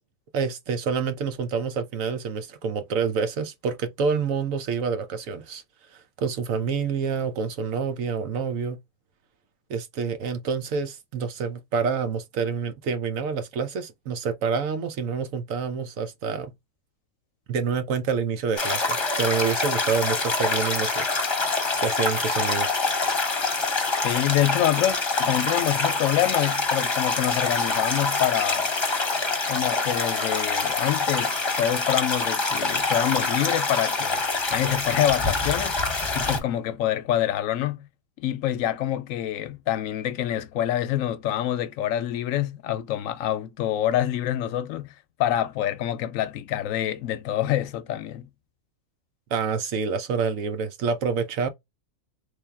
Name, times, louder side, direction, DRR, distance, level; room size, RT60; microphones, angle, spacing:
voice 1, 0.3-5.6 5.9-8.8 9.7-16.5 17.5-21.1 21.8-22.8 49.3-51.5, right 5 dB, 80° right, 1.2 m, -27 dB
sound 1, 18.6-36.4, left 3 dB, 25° left, 0.8 m, -25 dB
voice 2, 24.0-28.7 29.5-34.2 34.5-35.8 36.1-37.9 38.2-44.9 45.2-48.3, left 12 dB, 80° left, 1.0 m, -26 dB
3.4 x 2.6 x 3.3 m
omnidirectional pair, 1.4 m